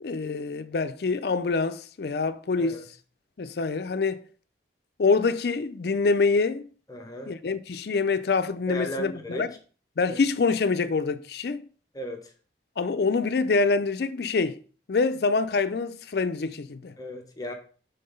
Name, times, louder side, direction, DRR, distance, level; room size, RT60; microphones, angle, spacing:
voice 1, 0.0-2.8 3.4-4.2 5.0-6.7 7.3-9.5 10.0-11.6 12.8-14.6 14.9-16.9, left 4 dB, 60° left, 0.4 m, -25 dB
voice 2, 6.9-7.3 8.7-9.5 10.1-10.2 11.9-12.3 17.0-17.5, equal, 20° left, 0.7 m, -35 dB
5.6 x 3.8 x 5.3 m
head